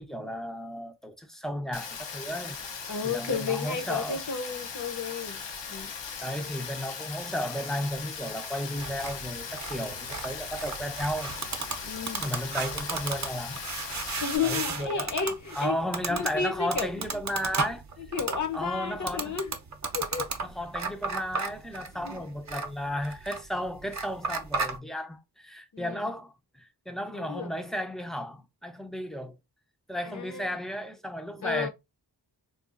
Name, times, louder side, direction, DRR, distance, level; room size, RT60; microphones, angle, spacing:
voice 1, 0.0-2.6 3.0-4.2 6.2-11.3 12.2-13.6 14.4-15.1 15.6-17.8 18.5-19.4 20.4-29.4 29.9-31.7, equal, ahead, 0.5 m, -34 dB
Rain, 1.7-14.4, left 6 dB, 85° left, 0.7 m, -39 dB
voice 2, 2.9-5.4 5.7-5.9 11.8-12.2 14.2-15.8 16.1-17.2 18.0-19.5 19.9-20.3 21.9-22.3 25.7-26.1 27.1-27.5 30.0-30.6 31.4-31.7, left 6 dB, 45° left, 0.7 m, -32 dB
sound 1, 8.8-24.8, right 4 dB, 40° right, 0.6 m, -35 dB
3.8 x 2.3 x 2.4 m
wide cardioid pair, 85°, 42 cm